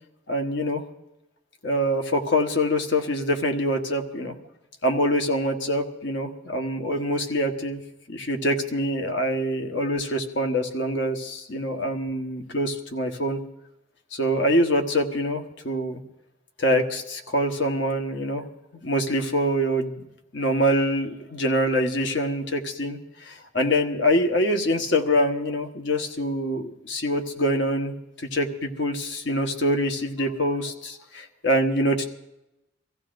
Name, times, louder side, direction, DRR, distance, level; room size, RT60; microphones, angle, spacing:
voice 1, 0.3-0.8 1.6-4.3 4.8-7.8 8.1-13.4 14.1-16.0 16.6-18.4 18.8-20.0 20.3-27.9 28.3-32.1, equal, 65° left, 4 dB, 1.2 m, -25 dB
24.5 x 15.0 x 2.6 m, 0.90 s
head